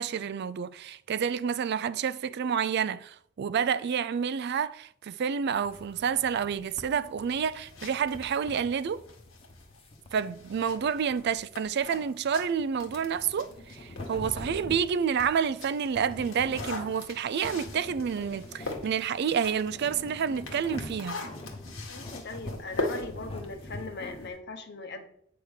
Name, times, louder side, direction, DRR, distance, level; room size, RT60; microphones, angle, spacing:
voice 1, 0.0-9.0 10.1-21.2, right 7 dB, 55° right, 0.4 m, -29 dB
sound 1, 5.6-24.3, left 1 dB, 30° left, 1.1 m, -45 dB
sound 2, 7.4-14.2 14.6-24.4, left 2 dB, 75° left, 1.7 m, -41 dB
voice 2, 21.9-25.1, left 3 dB, 55° left, 1.1 m, -40 dB
9.0 x 3.5 x 6.4 m
head